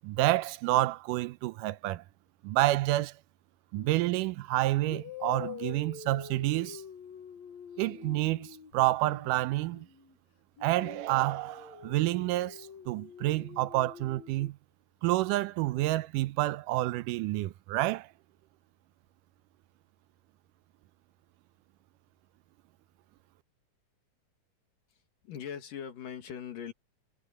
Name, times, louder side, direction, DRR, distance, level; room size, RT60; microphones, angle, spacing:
voice 1, 0.0-2.0 2.4-3.1 3.7-6.8 7.8-9.9 10.6-14.6 15.0-18.1, right 17 dB, 85° right, 2.2 m, -29 dB
sound 1, 3.8-4.0 4.8-10.2 10.6-14.5, left 8 dB, 60° left, 2.8 m, -46 dB
voice 2, 24.9-26.7, left 8 dB, 85° left, 4.0 m, -41 dB
omnidirectional pair, 3.7 m